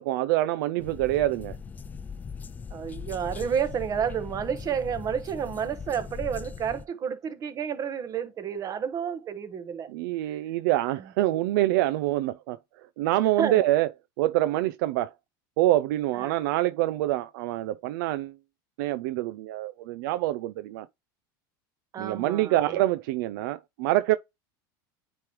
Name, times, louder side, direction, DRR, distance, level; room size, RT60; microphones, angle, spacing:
voice 1, 0.0-1.6 9.9-12.6 13.0-13.9 14.2-15.1 15.6-18.3 18.8-20.9 22.0-24.2, right 15 dB, 70° right, 0.4 m, -26 dB
sound 1, 0.8-6.9, left 6 dB, 15° left, 0.4 m, -40 dB
voice 2, 2.7-9.9 13.4-13.6 16.1-16.3 21.9-22.8, right 8 dB, 30° right, 1.3 m, -30 dB
9.4 x 3.2 x 3.1 m
supercardioid pair, 135°, 11 cm